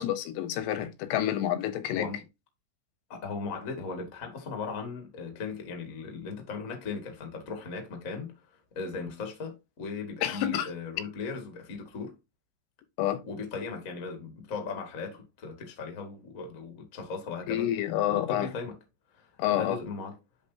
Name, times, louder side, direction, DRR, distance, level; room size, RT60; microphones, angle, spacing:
voice 1, 0.0-2.1 10.2-10.7 13.0-13.2 17.5-18.5 19.4-19.8, left 12 dB, 90° left, 3.5 m, -28 dB
voice 2, 3.1-12.1 13.2-17.7 18.1-18.8 19.1-20.1, left 4 dB, 45° left, 1.1 m, -38 dB
10.5 x 4.0 x 2.8 m
omnidirectional pair, 5.4 m